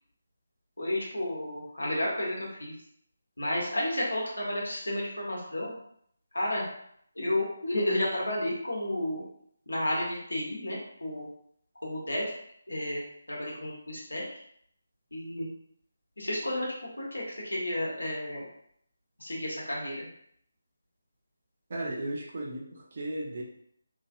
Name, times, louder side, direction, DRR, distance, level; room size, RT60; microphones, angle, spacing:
voice 1, 0.8-2.7 3.4-5.7 6.3-6.7 7.1-9.2 9.7-11.3 11.8-12.3 12.7-13.0 13.3-14.4 15.1-15.5 16.2-18.5 19.2-20.1, left 1 dB, 80° left, -3 dB, 1.0 m, -32 dB
voice 2, 21.7-23.4, right 1 dB, 45° right, -2 dB, 0.7 m, -35 dB
2.9 x 2.5 x 2.5 m, 0.67 s
figure-of-eight pair, 155°, 0 cm